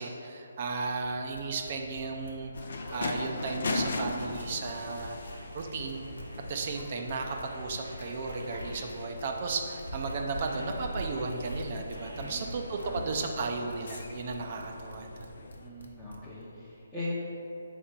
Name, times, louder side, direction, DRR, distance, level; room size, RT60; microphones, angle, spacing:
voice 1, 0.0-2.5 2.9-5.2 5.5-6.1 6.5-15.3, right 4 dB, 35° right, 3 dB, 0.5 m, -34 dB
sound 1, 0.6-13.5, right 1 dB, 85° right, 1.3 m, -45 dB
sound 2, 1.3-3.5 3.8-16.4, left 2 dB, 70° left, 0.9 m, -48 dB
sound 3, 2.5-15.7, left 3 dB, 50° left, 0.6 m, -40 dB
voice 2, 12.1-12.5 12.8-13.1 15.6-17.2, left 2 dB, 5° left, -13 dB, 0.8 m, -40 dB
5.0 x 4.3 x 5.8 m, 2.7 s
figure-of-eight pair, 140°, 0 cm